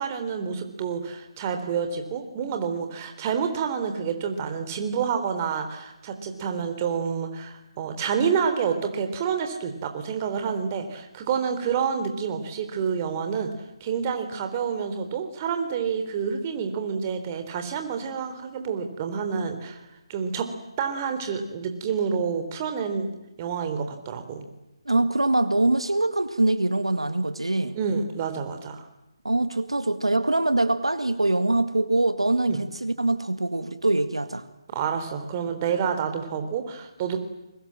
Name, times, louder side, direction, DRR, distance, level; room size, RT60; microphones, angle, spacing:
voice 1, 0.0-13.5 13.8-19.8 20.1-20.5 20.8-24.5 27.7-28.9 32.5-32.6 34.7-37.2, right 6 dB, 30° right, 7 dB, 3.6 m, -28 dB
voice 2, 24.9-27.8 29.2-34.4, right 2 dB, 85° right, 10 dB, 2.0 m, -23 dB
29.5 x 23.0 x 7.7 m, 0.92 s
figure-of-eight pair, 150°, 3 cm